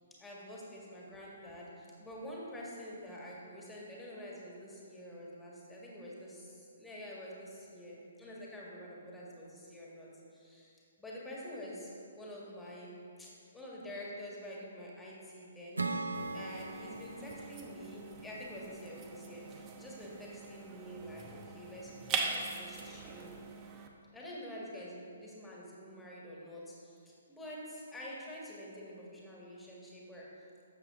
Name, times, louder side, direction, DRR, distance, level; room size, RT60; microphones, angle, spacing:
voice 1, 0.2-11.9 12.2-15.9 16.3-23.3 24.1-30.3, equal, 5° left, -5 dB, 1.9 m, -47 dB
Acoustic guitar / Strum, 15.8-19.2, right 3 dB, 75° right, 0.7 m, -40 dB
sound 1, 16.1-23.9, right 5 dB, 20° right, 0.9 m, -42 dB
12.5 x 7.6 x 3.8 m, 2.6 s
figure-of-eight pair, 130°, 0 cm